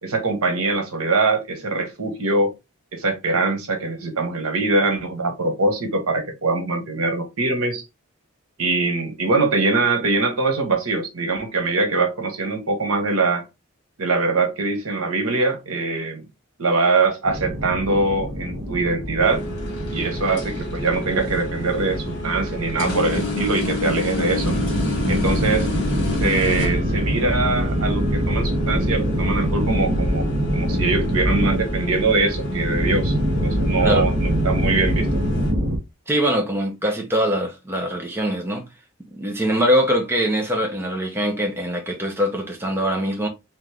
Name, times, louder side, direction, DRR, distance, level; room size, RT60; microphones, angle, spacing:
voice 1, 0.0-2.5 2.9-7.8 8.6-13.4 14.0-16.2 16.6-19.4 19.9-24.6 25.1-25.7 26.2-30.2 30.5-35.2, right 3 dB, 85° right, 1.2 m, -22 dB
Clustered wind buildup for games, 17.3-35.8, equal, 45° right, 1.1 m, -24 dB
sound 1, 19.2-35.5, left 2 dB, 55° left, 1.9 m, -32 dB
voice 2, 36.1-38.6 39.1-43.3, equal, 10° right, 0.7 m, -22 dB
3.6 x 3.1 x 3.4 m
head